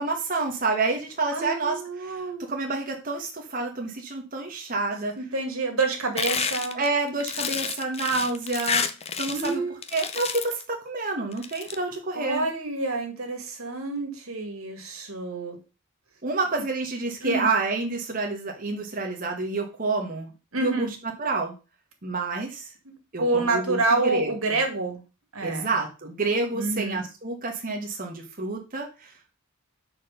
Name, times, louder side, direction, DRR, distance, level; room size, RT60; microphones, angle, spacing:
voice 1, 0.0-2.2 2.5-5.1 6.7-8.8 9.2-9.6 9.9-12.4 16.2-20.3 20.6-20.9 21.2-21.5 22.0-22.7 23.1-24.6 25.4-29.1, right 3 dB, 40° right, 1 dB, 1.2 m, -28 dB
voice 2, 1.3-2.5 5.2-6.8 9.3-9.8 12.1-15.6 17.2-17.5 20.5-20.9 23.2-25.0 25.3-25.7 26.5-27.1, right 3 dB, 85° right, 4 dB, 2.0 m, -28 dB
sound 1, 6.2-9.5 9.8-10.6 11.3-11.7, left 6 dB, 30° left, 0.6 m, -29 dB
6.2 x 4.5 x 6.5 m, 0.32 s
head